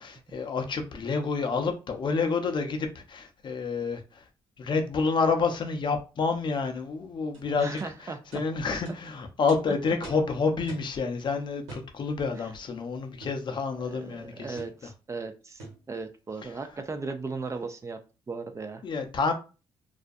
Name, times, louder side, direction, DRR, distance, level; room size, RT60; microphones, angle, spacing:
voice 1, 0.0-4.2 4.6-14.6 16.4-16.5 18.8-19.3, left 4 dB, 45° left, 0.5 m, -29 dB
sound 1, 7.3-7.4 7.8-7.9 8.3-8.5 8.9-9.0 9.5-9.6 10.0-10.3 10.7-10.9 11.7-11.9 13.2-13.4 14.6-14.8 15.6-15.8, right 2 dB, 85° right, 1.2 m, -44 dB
voice 2, 7.6-8.2 13.8-18.0 18.3-18.8, right 4 dB, 30° right, 0.4 m, -37 dB
2.4 x 2.1 x 2.5 m
supercardioid pair, 65°, 11 cm